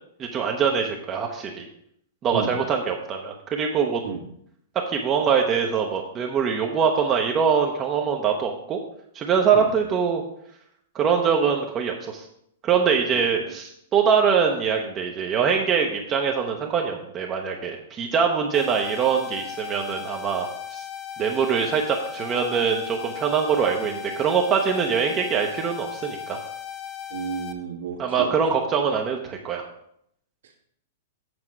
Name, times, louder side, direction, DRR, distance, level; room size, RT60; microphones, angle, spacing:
voice 1, 0.2-1.6 2.2-4.0 4.9-8.8 9.1-10.2 10.9-12.3 12.6-20.8 21.2-26.4 28.0-29.7, right 6 dB, 20° right, 2 dB, 0.7 m, -23 dB
sound 1, 18.5-27.5, left 10 dB, 30° left, 0.8 m, -37 dB
voice 2, 27.1-28.3 30.4-30.5, right 6 dB, 75° right, 0 dB, 1.5 m, -32 dB
7.9 x 4.3 x 6.0 m, 0.72 s
hypercardioid pair, 160°, 0 cm